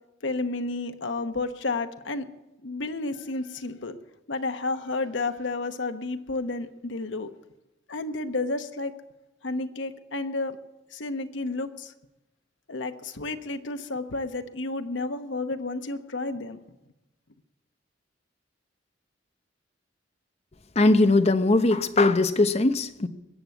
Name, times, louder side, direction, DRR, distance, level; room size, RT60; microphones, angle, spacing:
voice 1, 0.2-2.3 2.6-4.0 4.3-7.3 7.9-8.9 9.4-10.6 10.9-11.9 12.7-16.6, left 3 dB, 80° left, 1.0 m, -31 dB
voice 2, 20.8-23.1, left 2 dB, 35° left, 0.8 m, -20 dB
21.0 x 7.9 x 8.3 m
head